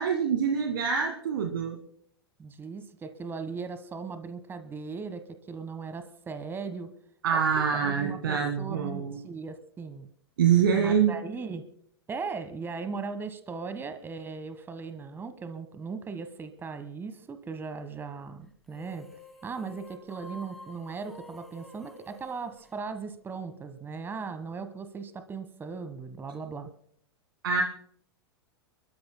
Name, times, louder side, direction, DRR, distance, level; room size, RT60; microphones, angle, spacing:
voice 1, 0.0-1.8 7.2-9.2 10.4-11.1 27.4-27.6, right 7 dB, 60° right, 4 dB, 1.8 m, -25 dB
voice 2, 2.4-6.9 7.3-7.4 7.7-10.1 10.8-11.6 12.1-19.1 19.4-26.7, right 5 dB, 15° right, 10 dB, 1.3 m, -38 dB
sound 1, 18.7-23.4, left 2 dB, ahead, 2.5 m, -50 dB
29.5 x 13.5 x 2.2 m, 0.63 s
figure-of-eight pair, 95°, 13 cm